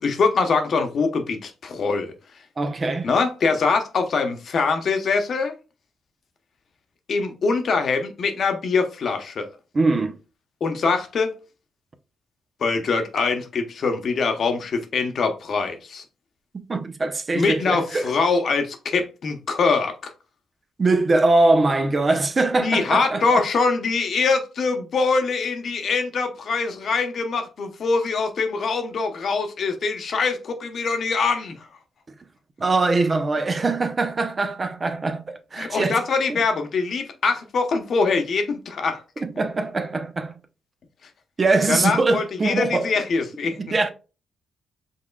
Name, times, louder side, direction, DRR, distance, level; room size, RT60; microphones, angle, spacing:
voice 1, 0.0-2.1 3.0-5.5 7.1-9.5 10.6-11.3 12.6-16.0 17.3-20.1 22.6-31.7 35.6-39.0 41.7-43.6, left 4 dB, 55° left, 0.9 m, -23 dB
voice 2, 2.6-3.1 9.7-10.2 16.5-18.1 20.8-23.2 32.6-36.0 36.3-36.4 39.2-40.3 41.4-42.9 43.6-43.9, right 3 dB, 35° right, 0.6 m, -22 dB
5.5 x 3.5 x 2.2 m
cardioid pair, 100°, 0 cm